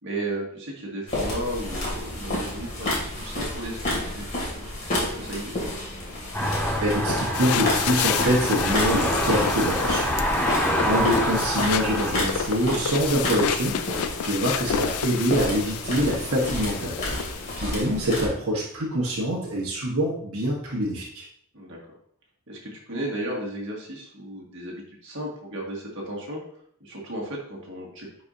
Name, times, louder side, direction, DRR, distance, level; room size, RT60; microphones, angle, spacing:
voice 1, 0.0-5.6 18.0-18.1 21.5-21.8 22.5-26.4 26.8-28.1, right 1 dB, 55° right, -2 dB, 1.8 m, -34 dB
sound 1, 1.1-18.3, left 1 dB, 35° left, 2.7 m, -31 dB
sound 2, 6.3-12.1, equal, 15° left, 2.0 m, -26 dB
voice 2, 6.8-10.5 10.8-17.0 17.6-21.2, equal, 75° right, -4 dB, 1.5 m, -25 dB
sound 3, 7.3-17.6, left 8 dB, 80° left, 0.4 m, -30 dB
9.9 x 4.7 x 2.8 m, 0.65 s
head